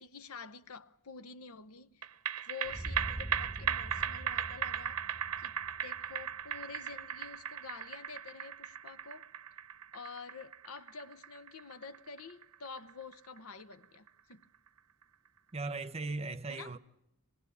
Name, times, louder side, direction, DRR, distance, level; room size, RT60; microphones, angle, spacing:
voice 1, 0.0-2.0 2.4-5.0 5.4-5.5 5.8-9.3 9.9-14.5 16.5-16.8, left 5 dB, 75° left, 0.9 m, -48 dB
sound 1, 2.0-14.7 15.0-15.1, right 9 dB, 80° right, 0.9 m, -38 dB
sound 2, 2.7-6.7, right 1 dB, ahead, 1.0 m, -44 dB
voice 2, 15.5-16.8, right 3 dB, 30° right, 0.8 m, -38 dB
26.0 x 20.5 x 8.5 m
head